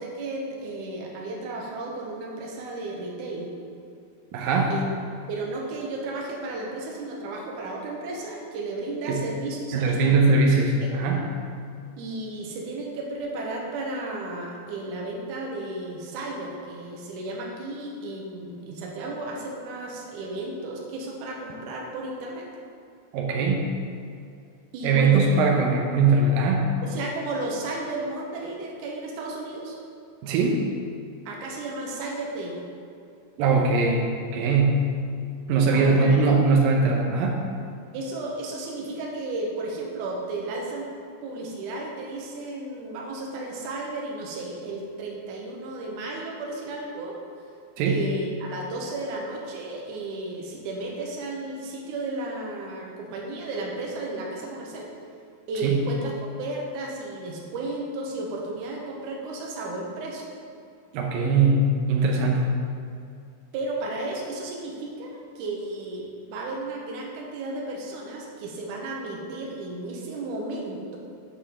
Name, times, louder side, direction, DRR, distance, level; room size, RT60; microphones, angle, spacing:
voice 1, 0.0-3.5 4.7-10.2 10.8-10.9 12.0-22.5 24.7-25.3 26.8-29.8 31.3-32.6 35.7-36.3 37.9-40.9 41.2-47.2 47.9-54.9 55.5-60.2 63.5-71.0, right 2 dB, 70° right, -2 dB, 2.5 m, -33 dB
voice 2, 4.3-4.7 9.1-9.2 9.7-11.3 23.1-23.7 24.8-26.7 30.2-30.7 33.4-34.9 35.5-37.5 47.8-48.0 55.6-55.8 60.9-62.6, right 3 dB, 85° right, 0 dB, 2.5 m, -21 dB
8.6 x 7.5 x 3.7 m, 2.4 s
omnidirectional pair, 3.9 m